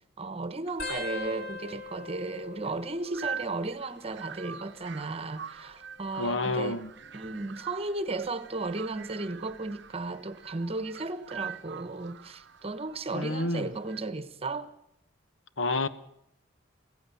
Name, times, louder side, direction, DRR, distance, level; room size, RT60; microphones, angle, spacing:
voice 1, 0.2-6.8 7.1-14.7, right 3 dB, 30° right, 1.2 m, -35 dB
sound 1, 0.7-14.0, right 7 dB, 60° right, 0.8 m, -45 dB
sound 2, 0.8-4.0 4.3-4.9 5.8-7.3 7.9-8.3 9.5-9.9 11.4-11.5, left 3 dB, 50° left, 3.3 m, -42 dB
voice 2, 6.2-6.9 13.1-13.7 15.6-15.9, left 2 dB, 75° left, 1.1 m, -29 dB
24.0 x 16.0 x 7.1 m
head